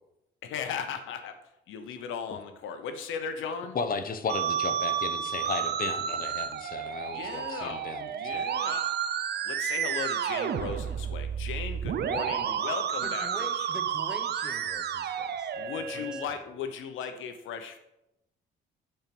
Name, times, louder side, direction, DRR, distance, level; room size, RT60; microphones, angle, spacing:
voice 1, 0.4-1.4 1.7-3.8 7.1-8.9 9.4-13.3 13.6-13.7 15.6-17.8, left 6 dB, 85° left, 8 dB, 0.9 m, -37 dB
voice 2, 3.7-8.4, left 5 dB, 45° left, 9 dB, 0.9 m, -35 dB
Musical instrument, 4.3-16.2, right 8 dB, 55° right, 0.7 m, -31 dB
voice 3, 13.0-15.7 15.9-16.4, equal, 5° right, 7 dB, 0.9 m, -44 dB
8.8 x 4.5 x 5.3 m, 0.87 s
cardioid pair, 90°, 20 cm